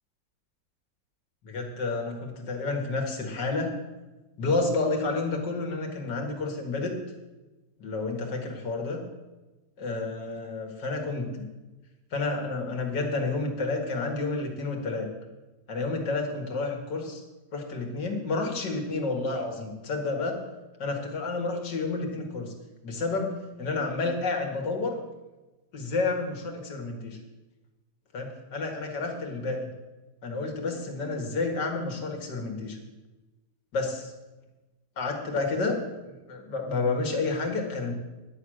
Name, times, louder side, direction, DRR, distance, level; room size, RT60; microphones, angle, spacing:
voice 1, 1.4-3.7 4.4-6.9 7.8-9.0 9.8-11.3 12.1-15.1 15.7-17.2 17.5-20.4 20.8-22.5 22.8-25.0 25.7-27.2 28.1-29.7 30.2-32.8 33.7-34.1 35.0-37.9, left 3 dB, 85° left, 2 dB, 2.5 m, -30 dB
10.5 x 6.5 x 9.0 m, 1.1 s
omnidirectional pair, 1.8 m